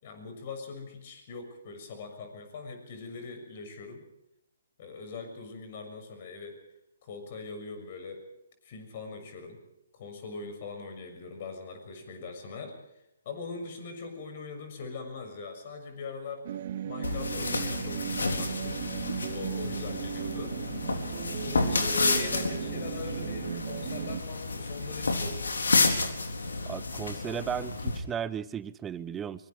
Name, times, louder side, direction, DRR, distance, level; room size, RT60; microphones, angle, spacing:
voice 1, 0.0-4.0 4.8-6.6 7.0-8.2 8.6-9.6 9.9-12.7 13.2-16.5 16.8-18.8 19.3-20.6 21.4-25.4, left 4 dB, 45° left, 7 dB, 6.5 m, -41 dB
sound 1, 16.5-24.2, right 10 dB, 45° right, 0.9 m, -37 dB
sound 2, 17.0-28.0, left 3 dB, 75° left, 3.9 m, -30 dB
voice 2, 26.7-29.5, right 8 dB, 15° right, 17 dB, 0.8 m, -35 dB
24.5 x 24.0 x 4.8 m, 0.85 s
figure-of-eight pair, 135°, 0 cm